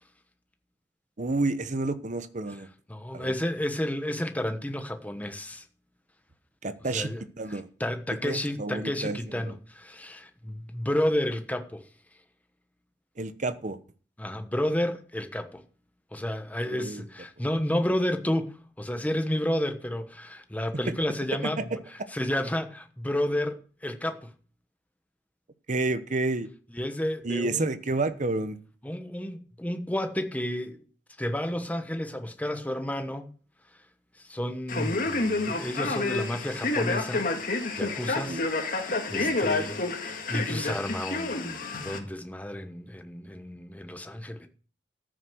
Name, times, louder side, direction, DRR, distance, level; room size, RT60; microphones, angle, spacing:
voice 1, 1.2-2.7 3.1-3.3 6.6-7.1 7.4-7.7 8.2-9.5 13.2-13.8 16.7-17.0 21.4-21.8 25.7-26.5 27.2-28.6 38.3-38.4 39.2-39.3, right 2 dB, 45° right, 0.9 m, -30 dB
voice 2, 2.9-5.6 6.9-7.2 7.5-11.8 14.2-15.6 16.1-21.6 22.1-24.3 26.7-27.7 28.8-30.8 31.2-33.3 34.3-37.3 37.8-38.4 38.7-44.5, left 1 dB, 10° left, 1.1 m, -31 dB
Male speech man speaking, 34.7-42.0, left 3 dB, 50° left, 1.9 m, -29 dB
14.0 x 6.4 x 6.3 m
head